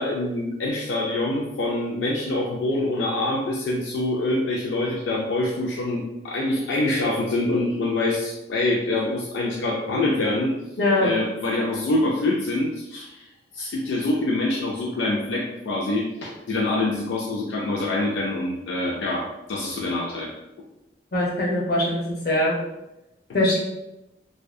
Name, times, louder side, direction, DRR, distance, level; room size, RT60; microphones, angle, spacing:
voice 1, 0.0-10.5 11.0-13.2 13.5-20.3, left 2 dB, 90° left, -2 dB, 0.4 m, -25 dB
voice 2, 10.8-11.1 21.1-22.5 23.3-23.6, left 1 dB, 60° left, -4 dB, 0.7 m, -22 dB
2.6 x 2.1 x 2.3 m, 0.93 s
head